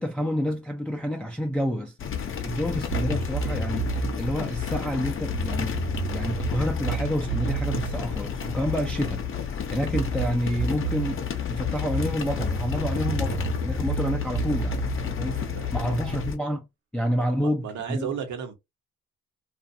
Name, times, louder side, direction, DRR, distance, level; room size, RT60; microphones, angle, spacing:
voice 1, 0.0-1.9 2.4-5.8 6.1-9.2 9.7-14.9 15.2-15.4 15.7-16.6 16.9-18.1, equal, 5° left, 0.4 m, -28 dB
sound 1, 2.0-16.4, left 8 dB, 45° left, 0.7 m, -31 dB
sound 2, 2.9-4.2 5.3-9.0 9.9-11.2 11.9-15.9, right 5 dB, 45° right, 0.6 m, -31 dB
voice 2, 15.3-16.0 17.1-18.6, right 7 dB, 75° right, 1.1 m, -35 dB
2.5 x 2.4 x 2.5 m
cardioid pair, 90°, 30 cm